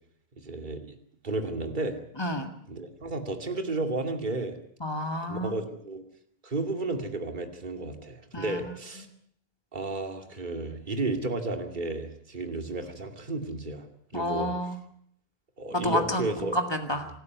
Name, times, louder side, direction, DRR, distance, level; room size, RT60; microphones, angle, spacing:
voice 1, 0.4-1.0 1.2-2.0 2.7-4.6 5.3-6.0 6.4-9.1 9.7-13.9 14.1-14.7 15.6-16.5, right 2 dB, 15° right, 5 dB, 1.9 m, -32 dB
voice 2, 2.2-2.5 4.8-5.5 8.3-8.6 14.1-14.8 15.7-17.1, left 1 dB, 25° left, 5 dB, 0.5 m, -30 dB
27.0 x 13.0 x 9.4 m, 0.67 s
omnidirectional pair, 4.0 m